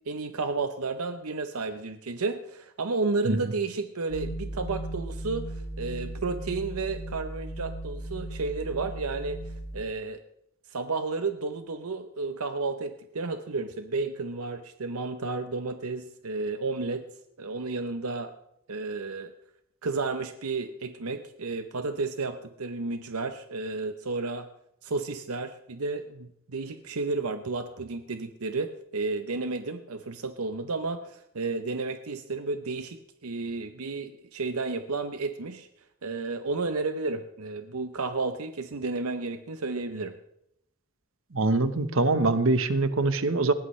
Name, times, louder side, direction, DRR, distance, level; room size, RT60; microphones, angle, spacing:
voice 1, 0.1-10.2 10.7-17.0 17.4-18.3 18.7-19.3 19.8-24.5 24.8-35.7 36.0-40.1, right 3 dB, 80° right, 8 dB, 0.8 m, -32 dB
sound 1, 4.1-9.8, right 1 dB, 45° left, 4.4 m, -37 dB
voice 2, 41.3-43.5, right 2 dB, 65° right, 10 dB, 1.1 m, -23 dB
20.0 x 17.0 x 3.2 m, 0.78 s
head